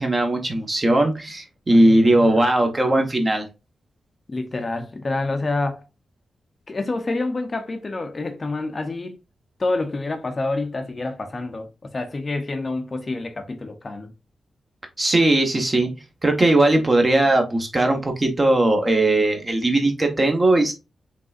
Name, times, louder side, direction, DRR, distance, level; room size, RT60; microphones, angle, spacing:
voice 1, 0.0-3.4 15.0-15.9 16.2-20.7, right 1 dB, 25° right, 0.9 m, -19 dB
voice 2, 1.7-2.3 4.3-5.8 6.7-9.2 9.6-14.1, left 2 dB, 30° left, 0.5 m, -28 dB
5.1 x 3.3 x 2.4 m
wide cardioid pair, 140°, 0 cm